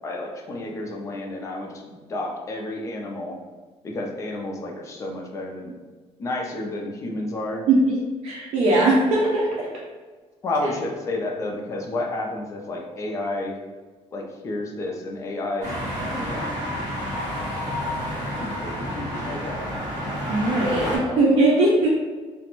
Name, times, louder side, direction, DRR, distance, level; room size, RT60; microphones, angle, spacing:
voice 1, 0.0-3.4 3.8-5.7 6.2-7.6 10.4-13.6 14.1-15.7 16.0-16.5 18.4-19.7 20.7-21.4, left 2 dB, 25° left, 0 dB, 0.4 m, -31 dB
voice 2, 7.7-8.0 8.2-9.7 20.3-21.9, right 2 dB, 75° right, -5 dB, 0.5 m, -20 dB
sound 1, 15.6-21.0, equal, 40° right, 1.1 m, -29 dB
2.4 x 2.1 x 2.9 m, 1.4 s
cardioid pair, 170°, 11 cm